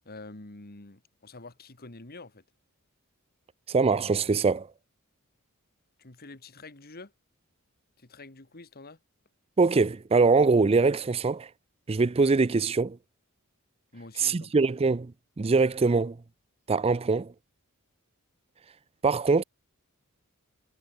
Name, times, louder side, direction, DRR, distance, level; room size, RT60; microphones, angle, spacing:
voice 1, 0.1-2.4 6.0-7.1 8.0-9.0 13.9-14.7, left 2 dB, 45° left, 2.1 m, -47 dB
voice 2, 3.7-4.7 9.6-11.5 11.9-13.0 14.2-15.1 15.4-16.2 16.7-17.3 19.0-19.4, right 4 dB, 25° right, 0.4 m, -23 dB
head